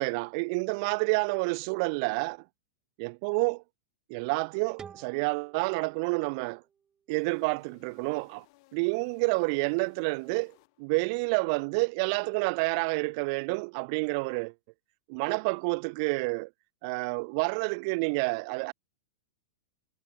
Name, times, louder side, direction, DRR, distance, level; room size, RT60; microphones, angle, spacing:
voice 1, 0.0-2.4 3.0-3.6 4.1-6.6 7.1-8.4 8.7-14.5 15.1-16.5 16.8-18.7, right 31 dB, 55° right, 0.6 m, -29 dB
sound 1, 4.8-7.6, right 7 dB, 25° right, 2.6 m, -52 dB
sound 2, 7.1-11.2, left 26 dB, 55° left, 6.7 m, -62 dB
hypercardioid pair, 105°, 3 cm